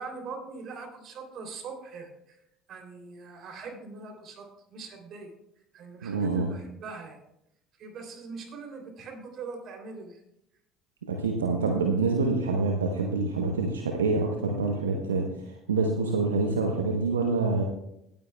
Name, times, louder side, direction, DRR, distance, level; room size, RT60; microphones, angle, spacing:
voice 1, 0.0-5.3 5.7-7.2 7.8-10.2, right 4 dB, 55° right, 3 dB, 2.9 m, -42 dB
voice 2, 6.0-6.5 11.1-15.3 15.7-17.6, right 3 dB, 90° right, 2 dB, 0.8 m, -26 dB
17.5 x 8.9 x 2.2 m, 0.80 s
hypercardioid pair, 65°, 0 cm